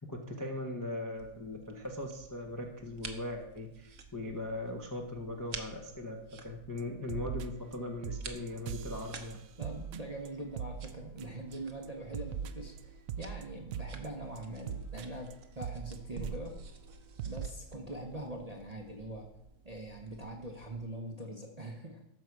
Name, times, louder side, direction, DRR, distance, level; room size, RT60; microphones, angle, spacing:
voice 1, 0.1-9.4, left 1 dB, 20° left, 2 dB, 0.6 m, -39 dB
sound 1, 1.2-20.9, right 5 dB, 55° right, 1.1 m, -51 dB
sound 2, 6.8-6.9 7.1-7.8 8.0-11.5 11.8-16.6 16.9-17.0 17.2-17.5, right 8 dB, 70° right, 0.8 m, -41 dB
voice 2, 9.6-16.6 17.2-19.3 19.6-22.0, right 1 dB, 30° right, 0 dB, 0.7 m, -43 dB
12.5 x 5.4 x 4.7 m, 0.82 s
omnidirectional pair, 1.8 m